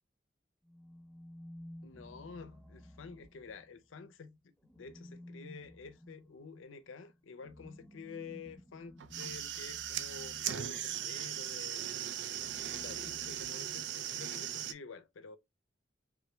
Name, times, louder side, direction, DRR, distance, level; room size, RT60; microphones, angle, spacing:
sound 1, 0.6-4.0 4.6-11.2 12.2-14.2, equal, ahead, 0.4 m, -54 dB
voice 1, 1.8-12.0 12.7-15.4, left 4 dB, 90° left, 0.5 m, -49 dB
sound 2, 9.0-14.7, right 10 dB, 65° right, 0.5 m, -38 dB
3.7 x 3.0 x 3.2 m
head